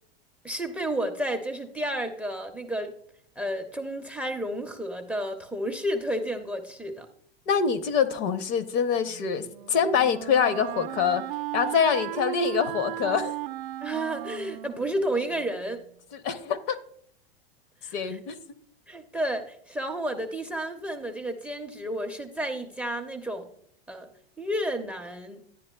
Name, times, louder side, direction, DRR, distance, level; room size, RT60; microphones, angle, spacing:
voice 1, 0.4-2.9 3.4-7.1 13.8-15.8 17.8-18.2 18.9-23.5 23.9-24.1 24.4-25.4, right 1 dB, 5° right, 0.5 m, -31 dB
voice 2, 7.5-11.2 11.5-13.3 16.1-16.8 17.9-18.4, left 7 dB, 50° left, 0.7 m, -25 dB
Wind instrument woodwind instrument, 9.0-15.9, right 17 dB, 60° right, 0.5 m, -36 dB
11.0 x 9.6 x 2.2 m
hypercardioid pair, 115°, 32 cm